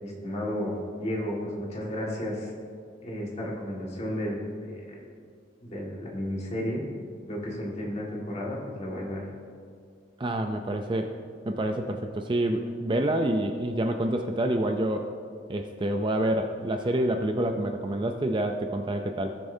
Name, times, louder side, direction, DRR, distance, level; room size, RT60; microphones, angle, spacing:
voice 1, 0.0-2.5 3.0-5.0 5.6-6.8 7.3-9.3, equal, 35° left, -3 dB, 1.8 m, -33 dB
voice 2, 10.2-11.1 11.4-15.1 15.5-19.3, right 1 dB, 25° right, 5 dB, 0.4 m, -27 dB
17.5 x 6.7 x 2.7 m, 2.2 s
head